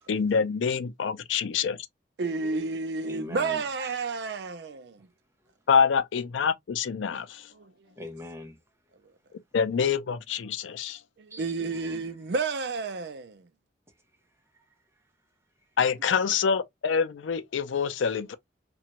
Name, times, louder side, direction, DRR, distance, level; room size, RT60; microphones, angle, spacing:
voice 1, 0.1-1.8 5.7-7.3 9.5-11.0 15.8-18.3, left 6 dB, 90° left, 0.4 m, -26 dB
voice 2, 2.2-5.1 11.2-13.4, right 4 dB, 65° right, 0.4 m, -31 dB
voice 3, 3.0-4.1 5.0-5.1 8.0-8.6 11.3-12.2 14.5-15.0, left 1 dB, 15° right, 0.7 m, -44 dB
2.9 x 2.3 x 2.8 m
head